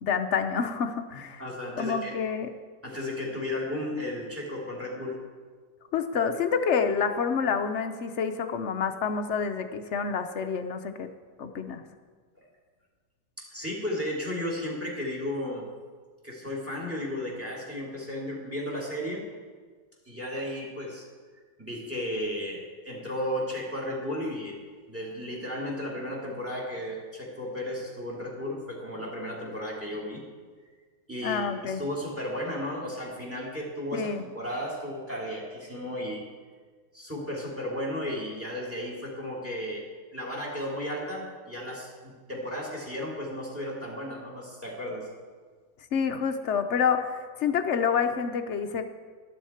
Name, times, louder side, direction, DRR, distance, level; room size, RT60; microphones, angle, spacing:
voice 1, 0.0-1.4 1.8-2.5 5.9-11.1 11.4-11.8 31.2-31.8 33.9-34.2 45.9-48.9, left 6 dB, 65° left, 7 dB, 0.7 m, -28 dB
voice 2, 1.1-2.1 2.8-5.2 13.4-15.6 16.2-19.3 20.0-21.0 21.6-24.6 24.9-30.2 31.1-36.2 36.9-39.8 40.1-45.1, left 1 dB, 5° right, -3 dB, 2.8 m, -34 dB
12.5 x 12.0 x 4.4 m, 1.5 s
omnidirectional pair, 1.9 m